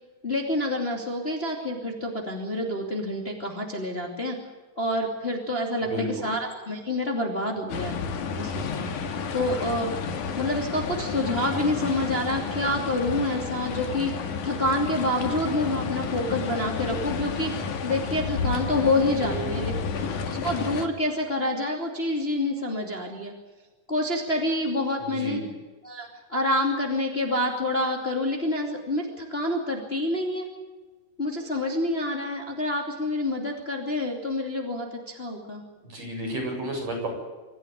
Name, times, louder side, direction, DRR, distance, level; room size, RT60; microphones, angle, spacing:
voice 1, 0.2-4.4 4.8-8.0 8.4-8.7 9.3-9.9 10.4-19.7 20.3-23.3 23.9-25.4 25.8-30.5 31.2-35.6, left 1 dB, 20° left, 1 dB, 2.6 m, -27 dB
voice 2, 5.8-6.3 19.2-19.9 25.0-25.5 35.8-37.1, right 1 dB, 50° right, 0 dB, 9.0 m, -32 dB
sound 1, 7.7-20.9, left 5 dB, 70° left, 3.2 m, -31 dB
26.0 x 14.0 x 10.0 m, 1.3 s
omnidirectional pair, 3.8 m